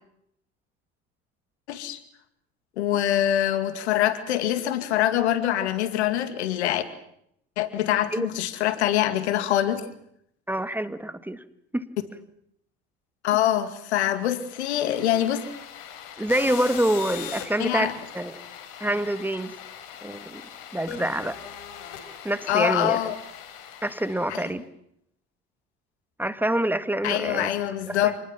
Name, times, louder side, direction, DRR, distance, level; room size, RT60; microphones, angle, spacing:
voice 1, 1.7-2.0 2.8-6.8 7.6-9.9 13.2-15.4 17.6-17.9 22.5-23.2 24.3-24.4 27.0-28.2, left 12 dB, 90° left, 11 dB, 2.3 m, -24 dB
voice 2, 10.5-11.4 11.7-11.9 16.2-18.4 18.8-19.5 20.0-20.4 20.7-21.4 22.2-23.0 23.8-24.6 26.2-27.5 27.9-28.1, right 1 dB, 5° right, 12 dB, 1.8 m, -26 dB
sound 1, 14.3-24.5, left 9 dB, 75° left, 4.4 m, -41 dB
27.0 x 20.5 x 7.4 m, 0.72 s
hypercardioid pair, 80°, 32 cm